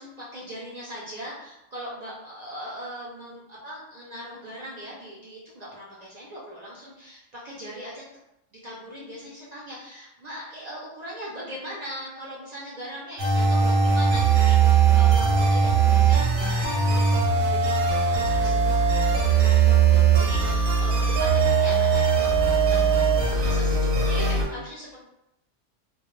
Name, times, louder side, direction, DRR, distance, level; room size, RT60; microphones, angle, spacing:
voice 1, 0.0-8.0 8.5-23.0 23.3-25.0, equal, 55° right, -6 dB, 0.4 m, -40 dB
sound 1, 13.2-24.4, right 5 dB, 90° right, 1.0 m, -20 dB
2.2 x 2.1 x 3.0 m, 0.83 s
omnidirectional pair, 1.3 m